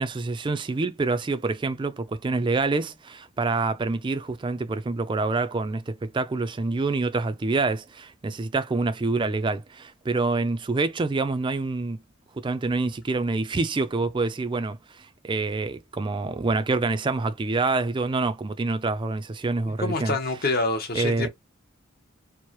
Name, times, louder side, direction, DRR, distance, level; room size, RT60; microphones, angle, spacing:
voice 1, 0.0-12.0 12.4-20.2 21.0-21.3, right 3 dB, 25° right, 0.4 m, -26 dB
voice 2, 19.8-21.3, left 3 dB, 50° left, 0.9 m, -26 dB
4.5 x 2.1 x 3.0 m
head